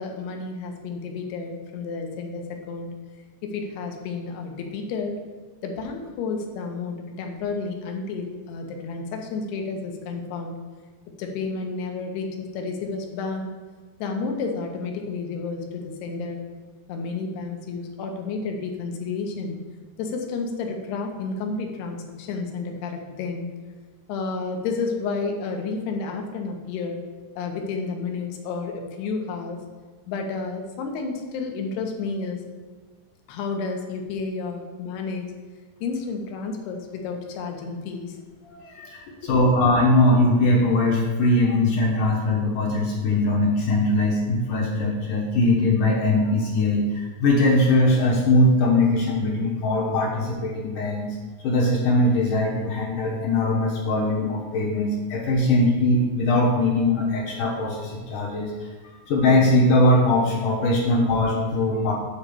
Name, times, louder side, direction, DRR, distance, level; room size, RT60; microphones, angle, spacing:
voice 1, 0.0-2.9 3.4-5.2 5.6-10.6 11.2-13.5 14.0-16.4 16.9-19.6 20.0-23.5 24.1-27.0 27.4-29.6 30.1-32.4 33.3-35.3 35.8-38.2 39.1-39.2, left 4 dB, 80° left, 3 dB, 3.0 m, -31 dB
voice 2, 38.4-51.1 51.4-58.5 59.1-61.9, left 2 dB, 65° left, -3 dB, 2.4 m, -21 dB
8.7 x 4.3 x 6.8 m, 1.4 s
omnidirectional pair, 4.7 m